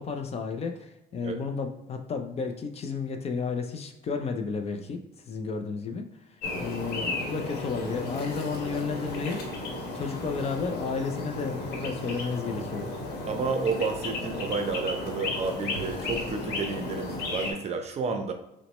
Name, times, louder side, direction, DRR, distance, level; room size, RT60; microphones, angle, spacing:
voice 1, 0.0-5.0 5.3-9.4 9.9-12.9, left 5 dB, 40° left, 5 dB, 0.5 m, -32 dB
sound 1, 6.4-17.5, left 2 dB, 75° left, 1.0 m, -34 dB
voice 2, 13.3-18.3, right 4 dB, 40° right, 6 dB, 0.6 m, -31 dB
5.7 x 2.1 x 3.1 m, 0.90 s
cardioid pair, 110°, 17 cm